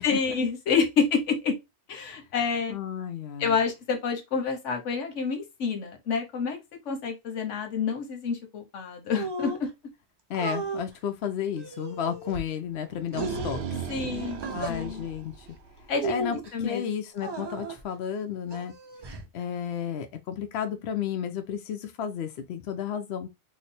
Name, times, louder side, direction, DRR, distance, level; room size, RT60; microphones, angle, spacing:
voice 1, 0.0-1.5 1.9-2.8 3.4-6.6 6.8-9.7 13.9-15.0 15.9-16.8, left 5 dB, 85° left, 1.2 m, -28 dB
voice 2, 2.7-3.6 10.3-13.6 14.5-15.5 16.0-16.4 16.6-18.7 19.3-23.3, left 8 dB, 70° left, 0.8 m, -32 dB
sound 1, 9.1-9.7 10.3-10.8 11.6-12.4 13.1-13.6 14.4-14.8 15.9-16.5 17.2-17.8 18.5-19.3, right 3 dB, 40° right, 0.3 m, -34 dB
sound 2, 12.8-16.0, right 7 dB, 65° right, 0.8 m, -36 dB
3.0 x 2.0 x 4.1 m
omnidirectional pair, 1.2 m